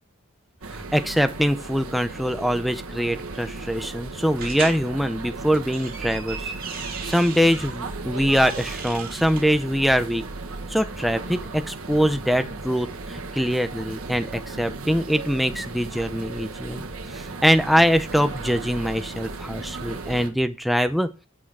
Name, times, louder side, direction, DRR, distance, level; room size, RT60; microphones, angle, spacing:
sound 1, 0.6-20.3, right 3 dB, 85° right, 1.4 m, -36 dB
voice 1, 0.7-6.5 7.0-10.2 10.7-16.8 17.1-21.1, equal, ahead, 9 dB, 0.6 m, -23 dB
sound 2, 4.4-4.8 5.5-7.7 8.2-9.4, right 6 dB, 45° right, 2.0 m, -36 dB
8.7 x 6.3 x 4.7 m, 0.31 s
head